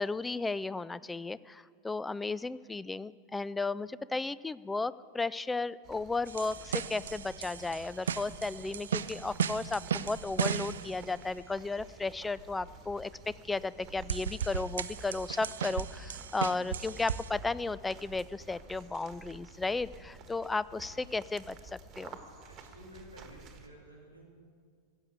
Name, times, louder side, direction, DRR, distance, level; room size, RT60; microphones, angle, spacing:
voice 1, 0.0-22.2, left 3 dB, 10° left, 18 dB, 0.3 m, -34 dB
sound 1, 5.8-23.7, right 5 dB, 30° right, 1.4 m, -52 dB
sound 2, 6.3-11.0 13.6-13.7 14.1-17.3, right 8 dB, 65° right, 0.5 m, -36 dB
voice 2, 22.4-24.2, equal, 85° left, -3 dB, 3.3 m, -52 dB
15.5 x 8.0 x 8.7 m, 2.1 s
figure-of-eight pair, 90°, 0 cm